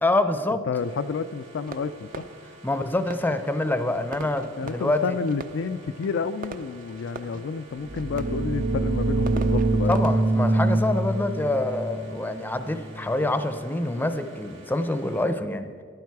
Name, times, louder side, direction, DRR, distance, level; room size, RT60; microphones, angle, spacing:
voice 1, 0.0-0.6 2.6-5.2 9.3-9.4 9.9-15.7, left 2 dB, 10° left, 9 dB, 0.6 m, -26 dB
voice 2, 0.7-2.2 4.6-9.9, left 5 dB, 65° left, 11 dB, 0.4 m, -30 dB
sound 1, 0.7-15.3, right 1 dB, 70° right, 3.5 m, -49 dB
Fireworks, 1.7-12.2, right 3 dB, 45° right, 0.6 m, -43 dB
sound 2, 7.8-13.4, right 2 dB, 85° right, 0.8 m, -25 dB
14.0 x 11.5 x 4.7 m, 2.1 s
head